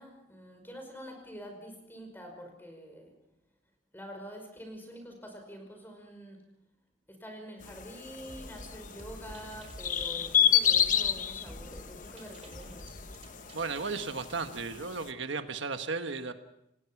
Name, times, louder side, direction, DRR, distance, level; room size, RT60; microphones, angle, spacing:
voice 1, 0.0-3.2 3.9-6.4 7.1-13.0, equal, 10° left, 4 dB, 5.4 m, -46 dB
sound 1, 7.6-15.1, left 9 dB, 40° left, 1.0 m, -31 dB
sound 2, 8.3-13.9, equal, 30° right, 4.1 m, -49 dB
voice 2, 13.5-16.3, right 4 dB, 75° right, 7 dB, 1.4 m, -35 dB
27.5 x 18.5 x 6.0 m, 0.82 s
head